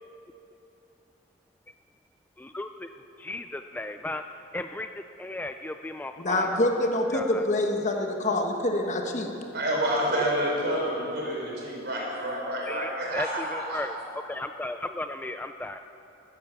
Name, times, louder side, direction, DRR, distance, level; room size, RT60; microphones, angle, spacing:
voice 1, 2.4-2.9 3.2-4.2 4.5-6.6 7.1-7.4 12.7-15.8, left 2 dB, 10° left, 7 dB, 0.3 m, -35 dB
voice 2, 6.2-9.3, left 1 dB, 40° left, 3 dB, 1.3 m, -26 dB
voice 3, 9.5-13.8, right 1 dB, 55° right, -3 dB, 4.8 m, -28 dB
15.0 x 13.0 x 7.0 m, 3.0 s
head